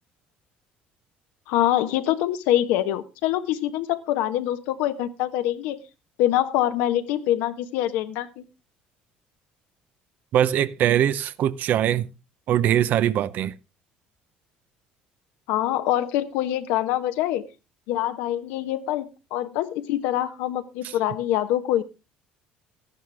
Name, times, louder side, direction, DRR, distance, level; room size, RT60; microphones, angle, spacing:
voice 1, 1.5-5.8 6.2-8.4 15.5-17.5 17.9-21.8, left 13 dB, 85° left, 1.1 m, -25 dB
voice 2, 10.3-12.1 12.5-13.5, right 11 dB, 60° right, 0.7 m, -22 dB
13.0 x 11.0 x 3.4 m
cardioid pair, 105°, 3 cm